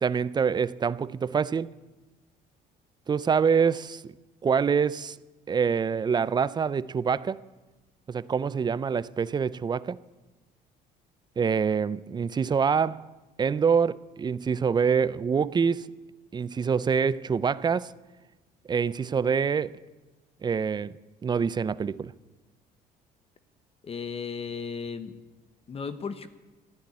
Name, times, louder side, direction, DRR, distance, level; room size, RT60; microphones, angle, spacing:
voice 1, 0.0-1.7 3.1-4.1 4.4-5.2 5.5-7.4 8.1-10.0 11.4-13.1 13.4-15.9 16.3-17.9 18.7-19.7 20.4-21.0 21.2-22.1, right 6 dB, 25° right, 0.4 m, -25 dB
voice 2, 23.8-25.2 25.7-26.3, left 5 dB, 35° left, 0.9 m, -35 dB
13.0 x 10.5 x 9.7 m
cardioid pair, 110°, 17 cm